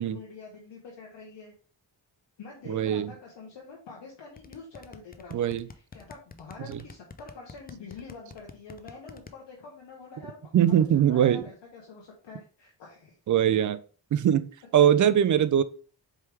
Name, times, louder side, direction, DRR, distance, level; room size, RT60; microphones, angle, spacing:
voice 1, 0.0-1.5 2.4-5.3 5.7-13.1, left 4 dB, 75° left, -2 dB, 1.0 m, -46 dB
voice 2, 2.7-3.1 5.3-5.7 6.7-6.8 10.5-11.4 13.3-13.8 14.1-15.6, right 9 dB, 45° right, 15 dB, 0.5 m, -22 dB
sound 1, 4.4-9.3, left 4 dB, 20° left, 0.5 m, -46 dB
4.5 x 3.4 x 3.3 m, 0.40 s
cardioid pair, 50°, 44 cm